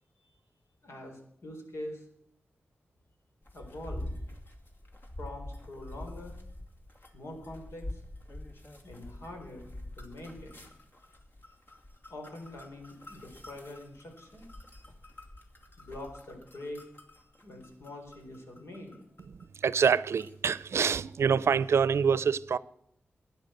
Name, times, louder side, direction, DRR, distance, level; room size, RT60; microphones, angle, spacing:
voice 1, 0.8-2.1 3.5-4.1 5.2-6.4 7.1-8.0 8.8-10.6 12.1-14.5 15.8-16.8 17.4-19.0, left 1 dB, 80° left, 4.1 m, -44 dB
sound 1, 3.4-19.9 20.1-20.5, left 1 dB, 55° left, 2.5 m, -46 dB
voice 2, 19.6-22.6, right 6 dB, 80° right, 0.6 m, -26 dB
16.0 x 10.5 x 7.8 m
wide cardioid pair, 100°, 4 cm